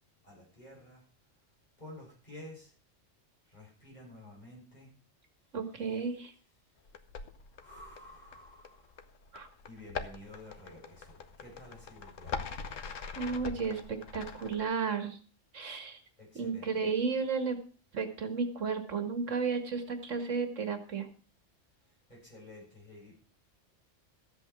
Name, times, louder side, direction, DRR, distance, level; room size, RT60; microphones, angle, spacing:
voice 1, 0.2-1.0 1.8-2.7 3.5-4.9 7.6-9.0 9.7-12.5 16.2-16.9 22.1-23.2, left 1 dB, 35° left, -4 dB, 7.5 m, -51 dB
voice 2, 5.5-6.3 9.3-9.5 13.2-15.2 15.5-16.0 16.4-17.6 17.9-21.1, right 5 dB, 80° right, 8 dB, 2.0 m, -33 dB
sound 1, 6.9-14.6, left 5 dB, 90° left, 1.5 m, -43 dB
14.0 x 8.1 x 6.0 m, 0.38 s
omnidirectional pair, 1.3 m